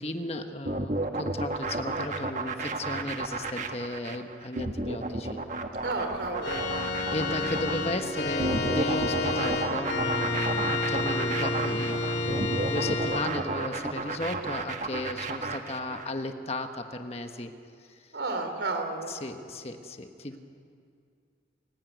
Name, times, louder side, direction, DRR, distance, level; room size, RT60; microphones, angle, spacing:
voice 1, 0.0-5.4 7.1-17.5 17.9-18.1 19.1-20.4, left 1 dB, 35° left, 6 dB, 1.4 m, -35 dB
sound 1, 0.7-16.1, right 2 dB, 45° right, 1.4 m, -32 dB
voice 2, 5.8-6.7 18.1-19.2, right 3 dB, 80° right, 5 dB, 3.7 m, -32 dB
Organ, 6.4-13.3, left 2 dB, 80° left, 3.5 m, -30 dB
29.0 x 16.5 x 9.4 m, 2.4 s
head